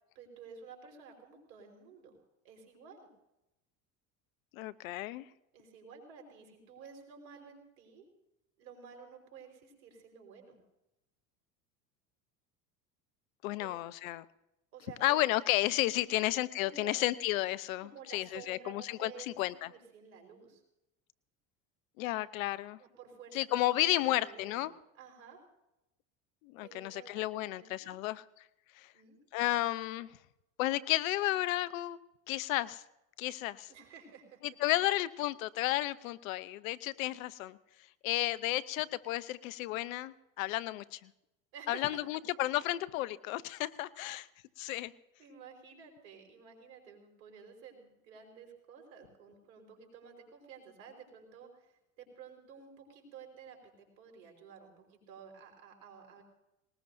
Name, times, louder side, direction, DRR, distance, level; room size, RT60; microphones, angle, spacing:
voice 1, 0.1-2.1 2.4-3.1 5.5-8.1 8.6-10.5 13.6-13.7 14.7-15.2 16.0-16.2 16.6-17.0 17.8-20.6 22.8-24.7 24.9-25.4 26.6-28.0 28.9-29.2 33.7-34.4 41.5-42.0 44.0-44.2 45.2-56.2, right 6 dB, 80° right, 2 dB, 4.7 m, -52 dB
voice 2, 4.5-5.2 13.4-14.2 15.0-19.7 22.0-22.8 23.3-24.7 26.4-28.2 28.8-28.9 29.3-30.1 30.6-32.0 32.3-32.8 33.2-33.7 34.4-37.6 38.0-41.1 41.7-44.3 44.6-44.9, left 16 dB, 80° left, 18 dB, 0.8 m, -32 dB
20.0 x 19.5 x 2.6 m, 0.89 s
hypercardioid pair, 85°, 40 cm